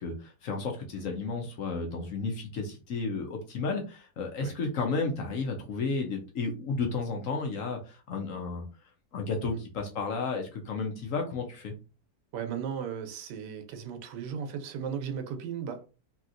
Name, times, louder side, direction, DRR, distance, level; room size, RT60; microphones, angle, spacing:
voice 1, 0.0-8.6 9.1-11.7, left 4 dB, 60° left, 0.9 m, -32 dB
voice 2, 12.3-15.9, right 7 dB, 85° right, 1.2 m, -36 dB
3.0 x 2.8 x 2.5 m
omnidirectional pair, 1.8 m